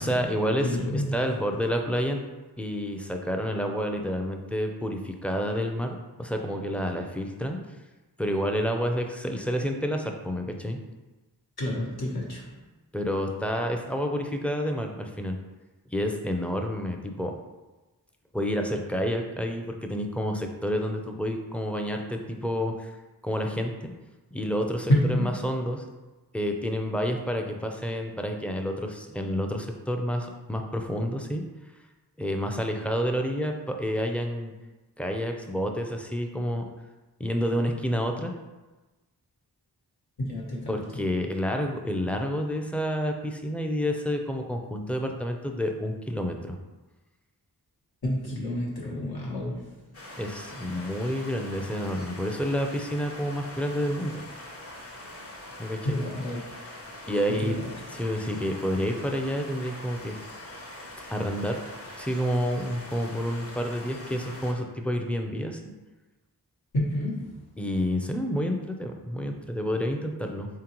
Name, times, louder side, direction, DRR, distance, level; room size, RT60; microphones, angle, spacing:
voice 1, 0.0-2.2 2.6-7.6 8.2-10.8 12.9-15.4 15.9-17.3 18.3-22.9 23.2-23.9 24.3-25.8 26.3-31.4 32.2-34.5 35.0-36.6 37.2-38.3 40.7-46.6 50.2-54.3 55.6-56.0 57.1-57.6 57.9-60.2 61.1-61.6 62.0-65.6 67.6-70.5, equal, 5° left, 3 dB, 0.4 m, -29 dB
voice 2, 0.6-1.2 11.6-12.5 24.9-25.3 40.2-41.0 48.0-49.7 55.8-56.4 57.3-57.7 66.7-67.4, left 1 dB, 70° left, -5 dB, 1.0 m, -29 dB
sound 1, 49.9-64.5, left 1 dB, 35° left, 0.7 m, -43 dB
3.7 x 3.7 x 3.0 m, 1.1 s
wide cardioid pair, 65°, 39 cm